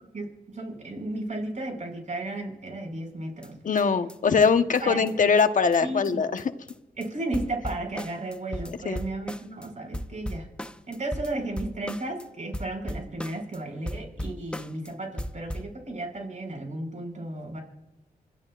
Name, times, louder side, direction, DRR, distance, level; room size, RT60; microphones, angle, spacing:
voice 1, 0.5-3.5 4.8-5.0 5.8-6.2 7.0-10.5 10.9-17.6, right 2 dB, 50° right, 2 dB, 6.0 m, -34 dB
sound 1, 3.4-3.5 3.8-3.9 4.1-4.2 4.4-4.5 4.7-4.8 5.1-5.2 5.4-5.5 5.7-5.8 6.0-6.1 6.4-6.7 7.0-7.1 7.3-9.7 9.9-12.3 12.5-13.6 13.9-14.9 15.2-15.7, equal, 5° left, 0.8 m, -37 dB
voice 2, 3.6-6.4 8.8-9.0, left 5 dB, 55° left, 8 dB, 1.2 m, -22 dB
28.0 x 13.0 x 2.5 m, 1.0 s
cardioid pair, 65°, 16 cm